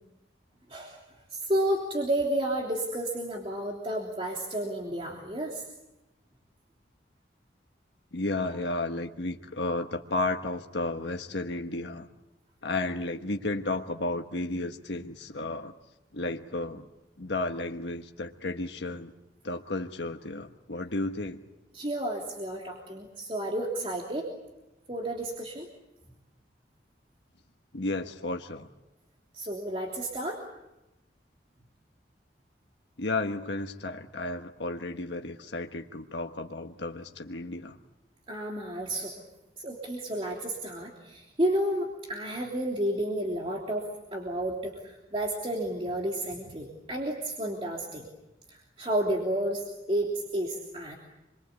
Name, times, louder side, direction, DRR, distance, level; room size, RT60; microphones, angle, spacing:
voice 1, 0.7-1.0 1.3-5.7 8.4-8.5 21.7-24.3 24.9-25.7 29.3-30.4 38.3-39.2 39.6-48.1 48.5-51.0, right 1 dB, 30° right, -1 dB, 3.2 m, -31 dB
voice 2, 8.1-12.1 12.6-15.7 16.1-16.8 17.2-19.1 19.4-21.4 27.7-28.7 33.0-37.8, left 2 dB, 80° left, 4 dB, 1.3 m, -33 dB
27.5 x 23.0 x 8.3 m, 0.98 s
head